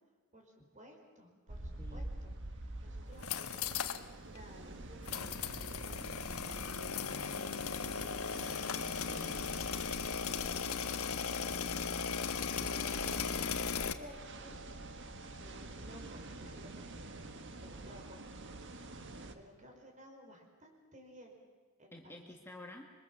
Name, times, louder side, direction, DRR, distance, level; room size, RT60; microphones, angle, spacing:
voice 1, 0.3-3.8 4.3-8.4 12.6-14.1 14.4-14.6 15.2-17.2 17.6-18.2 18.5-18.9 19.3-21.4 21.8-22.3, equal, 35° right, 2 dB, 4.5 m, -56 dB
sound 1, 1.5-19.3, right 2 dB, 55° right, 1.5 m, -48 dB
sound 2, 3.1-4.0 4.4-4.5 5.1-13.9, left 6 dB, 80° left, 1.2 m, -37 dB
voice 2, 9.0-9.5 21.9-22.8, left 1 dB, 10° left, 1 dB, 1.7 m, -51 dB
sound 3, 9.1-16.6, right 2 dB, 90° right, 1.6 m, -56 dB
26.5 x 23.0 x 7.3 m, 1.4 s
head